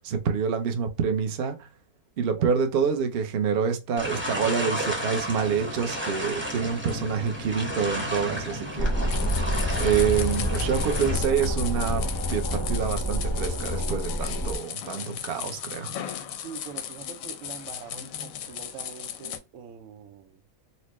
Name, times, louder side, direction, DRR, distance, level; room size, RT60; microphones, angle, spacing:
voice 1, 0.0-1.7 2.2-8.9 9.8-16.0, right 7 dB, 55° right, 0.7 m, -27 dB
voice 2, 2.4-2.8 9.7-10.0 16.4-20.4, right 7 dB, 85° right, 1.0 m, -44 dB
sound 1, 4.0-11.2, equal, 10° right, 0.9 m, -32 dB
sound 2, 8.8-14.5, equal, 35° left, 0.3 m, -28 dB
sound 3, 9.1-19.4, left 9 dB, 90° left, 1.0 m, -36 dB
4.3 x 2.1 x 3.0 m
omnidirectional pair, 1.4 m